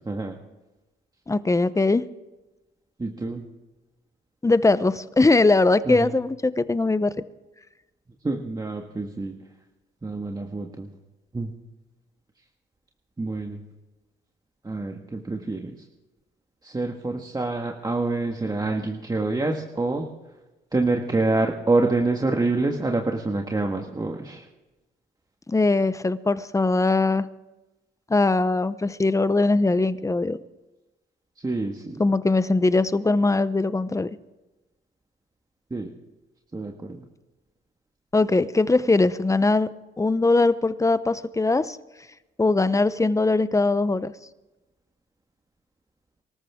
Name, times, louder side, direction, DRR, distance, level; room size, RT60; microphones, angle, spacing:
voice 1, 1.3-2.0 4.4-7.1 25.5-27.3 28.1-30.4 32.0-34.1 38.1-39.7 40.0-41.8 42.4-44.1, left 3 dB, 15° left, 14 dB, 0.8 m, -21 dB
voice 2, 3.0-3.4 5.8-6.1 8.2-9.4 10.0-10.9 11.3-11.5 13.2-13.6 14.6-15.7 16.6-20.1 20.7-24.4 31.4-32.0 35.7-35.9 36.5-37.0, right 2 dB, 20° right, 2 dB, 1.6 m, -26 dB
24.5 x 14.0 x 3.7 m, 1.1 s
cardioid pair, 90°, 20 cm